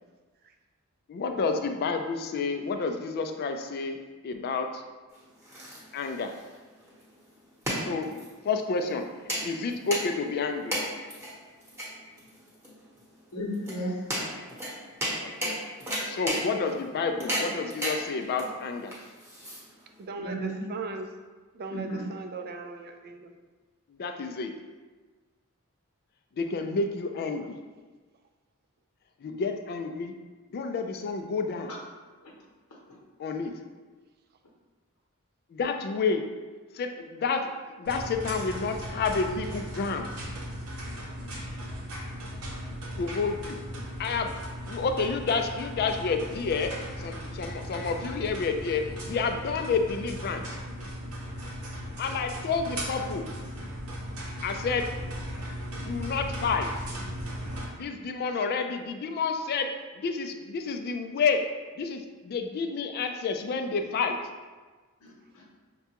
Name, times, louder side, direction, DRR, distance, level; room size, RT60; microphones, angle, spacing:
voice 1, 1.1-4.0 4.2-4.8 5.9-6.3 7.8-9.0 9.4-10.8 15.2-15.6 16.1-18.9 23.9-24.5 26.4-27.6 29.2-30.1 30.5-31.7 33.2-33.5 35.5-36.2 36.7-37.5 37.8-40.1 43.0-43.6 44.0-50.6 51.8-53.3 54.4-54.9 55.7-56.7 57.7-61.4 61.8-64.2, left 4 dB, 45° left, 6 dB, 0.3 m, -30 dB
sound 1, 5.1-20.0, equal, 10° right, 0.9 m, -35 dB
voice 2, 13.3-14.0 15.2-15.6 20.2-20.6 21.7-22.1 32.2-32.3 32.7-33.0 65.0-65.4, right 1 dB, 75° left, -4 dB, 0.8 m, -35 dB
voice 3, 20.0-21.1 21.5-23.3, right 2 dB, 45° right, 5 dB, 0.4 m, -38 dB
sound 2, 37.8-57.6, equal, 80° right, 0.8 m, -37 dB
5.8 x 2.2 x 2.9 m, 1.3 s
head